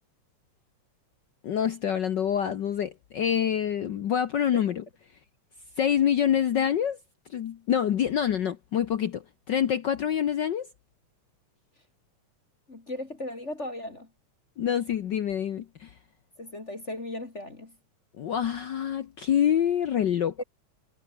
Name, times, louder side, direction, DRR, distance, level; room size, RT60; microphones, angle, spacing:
voice 1, 1.4-4.8 5.8-7.0 7.3-10.7 14.6-15.9 18.2-20.3, left 9 dB, 80° left, 1.0 m, -26 dB
voice 2, 12.7-14.1 16.4-17.7 20.4-20.5, left 1 dB, 25° left, 2.3 m, -36 dB
omnidirectional pair, 3.3 m